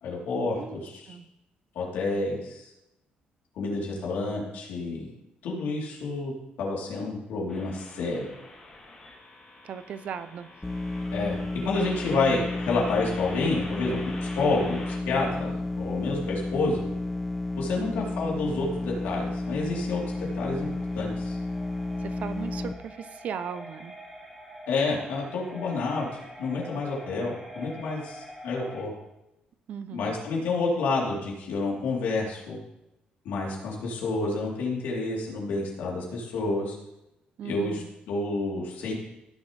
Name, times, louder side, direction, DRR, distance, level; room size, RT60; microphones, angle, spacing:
voice 1, 0.0-1.2 1.8-2.7 3.6-5.1 5.4-6.3 6.6-8.3 11.1-16.8 17.5-21.4 24.7-28.9 29.9-32.6 33.3-36.7 37.4-38.9, left 3 dB, 85° left, -3 dB, 3.5 m, -29 dB
sound 1, 7.5-15.0, left 2 dB, 25° left, 2.7 m, -44 dB
voice 2, 9.6-10.5 17.8-18.2 22.0-23.9 29.7-30.2 37.4-37.9, right 7 dB, 50° right, 12 dB, 0.6 m, -37 dB
sound 2, 10.6-22.7, left 2 dB, 10° left, 0.5 m, -32 dB
sound 3, 15.0-28.8, equal, 10° right, 2.2 m, -47 dB
16.5 x 7.3 x 3.3 m, 0.92 s
cardioid pair, 165°, 3 cm